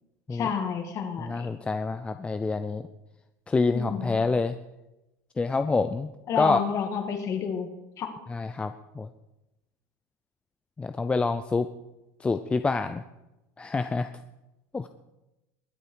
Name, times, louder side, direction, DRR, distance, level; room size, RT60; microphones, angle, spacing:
voice 1, 0.3-1.6 3.7-4.2 6.3-7.7 8.0-8.1, left 7 dB, 40° left, 6 dB, 2.2 m, -30 dB
voice 2, 1.2-2.8 3.5-4.5 5.4-6.1 6.4-6.6 8.3-9.1 10.8-11.7 12.2-13.0 13.6-14.1 14.7-14.9, left 3 dB, 15° left, 9 dB, 0.5 m, -27 dB
21.5 x 8.3 x 4.7 m, 0.96 s
supercardioid pair, 135°, 8 cm